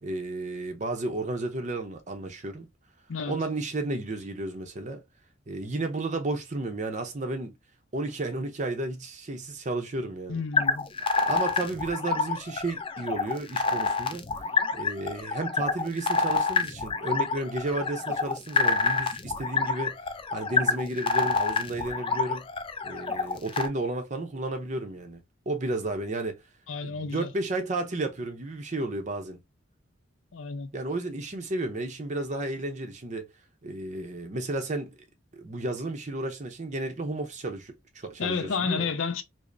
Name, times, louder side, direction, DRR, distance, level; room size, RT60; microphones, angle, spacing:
voice 1, 0.0-2.7 3.3-5.0 5.5-7.5 7.9-10.4 11.3-14.3 14.7-20.0 20.3-22.5 22.8-26.4 26.8-29.4 30.7-33.3 33.6-34.9 35.3-38.9, right 2 dB, 35° right, 0.6 m, -32 dB
voice 2, 3.1-3.4 10.3-10.9 26.7-27.3 30.3-30.7 38.2-39.2, left 5 dB, 80° left, 0.6 m, -31 dB
sound 1, 10.5-23.7, left 4 dB, 25° left, 0.4 m, -27 dB
5.0 x 2.0 x 2.5 m
head